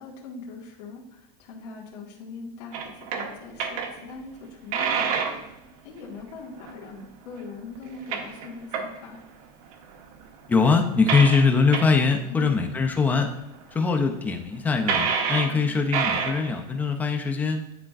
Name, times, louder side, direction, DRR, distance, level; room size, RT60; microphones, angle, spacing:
voice 1, 0.0-5.5 5.8-9.2 12.3-12.6 15.5-15.9, left 4 dB, 85° left, -3 dB, 1.6 m, -41 dB
sound 1, 2.7-3.3 3.6-4.1 4.7-5.5 6.6-6.7 7.8-9.2 9.7-10.2 11.0-11.5 11.7-11.9 12.6-12.7 13.3-13.4 13.6-13.7 13.9-14.0 14.9-15.6 15.8-16.6, right 6 dB, 65° right, 0.9 m, -27 dB
voice 2, 10.5-13.3 13.7-17.6, left 4 dB, 10° left, 4 dB, 0.4 m, -22 dB
10.0 x 4.3 x 2.4 m, 0.86 s
supercardioid pair, 175°, 20 cm